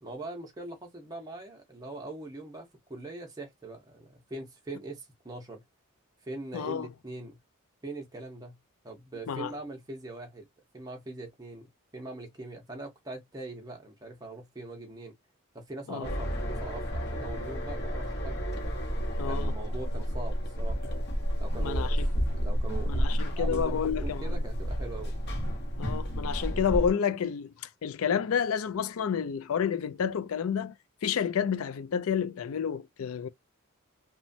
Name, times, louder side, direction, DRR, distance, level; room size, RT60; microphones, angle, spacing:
voice 1, 0.0-5.6 6.2-7.4 7.8-8.6 8.8-10.4 10.7-15.1 15.5-18.4 19.2-21.0 21.4-23.0 23.4-25.2, right 2 dB, 15° right, 0.6 m, -42 dB
voice 2, 6.5-6.9 9.3-9.5 15.9-16.2 19.2-19.5 21.6-22.1 22.9-24.4 25.8-30.7 31.0-33.3, left 7 dB, 70° left, 0.4 m, -30 dB
sound 1, 16.0-26.9, equal, 50° left, 0.8 m, -31 dB
3.0 x 2.1 x 2.6 m
head